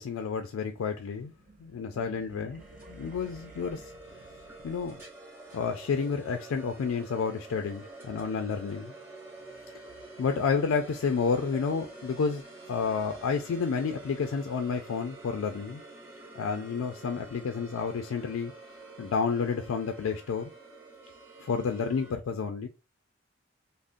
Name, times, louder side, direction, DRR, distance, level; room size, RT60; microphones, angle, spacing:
voice 1, 0.0-1.3 1.6-3.8 4.6-5.0 5.5-8.9 10.2-15.8 16.4-18.5 19.0-20.5 21.4-22.7, left 5 dB, 90° left, 0.3 m, -30 dB
sound 1, 1.1-5.4, right 2 dB, 40° right, 0.5 m, -53 dB
sound 2, 2.6-22.1, right 2 dB, 10° right, 0.7 m, -48 dB
3.6 x 2.0 x 2.5 m
head